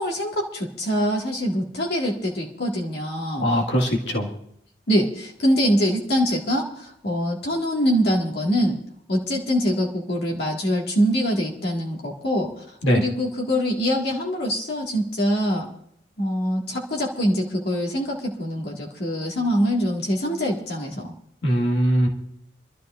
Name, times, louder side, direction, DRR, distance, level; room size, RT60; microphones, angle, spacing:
voice 1, 0.0-3.5 4.9-8.8 9.1-12.5 12.9-15.7 16.2-21.1, equal, 60° left, -2 dB, 1.9 m, -24 dB
voice 2, 3.4-4.3 12.8-13.0 21.4-22.1, equal, 85° left, 0 dB, 1.9 m, -21 dB
26.5 x 13.0 x 2.5 m, 0.70 s
head